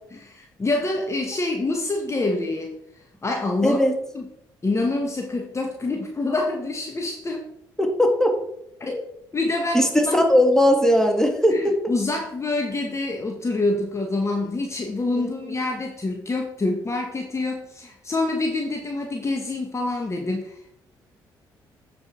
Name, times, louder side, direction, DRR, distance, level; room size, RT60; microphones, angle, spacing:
voice 1, 0.1-2.8 3.2-3.8 4.1-4.3 4.6-7.4 8.8-9.0 9.3-10.2 11.5-20.7, left 2 dB, 30° left, 2 dB, 1.3 m, -26 dB
voice 2, 3.6-3.9 7.8-8.3 9.7-11.7 15.1-15.4, equal, 5° left, 3 dB, 2.0 m, -19 dB
8.2 x 4.8 x 4.9 m, 0.76 s
supercardioid pair, 60°, 10 cm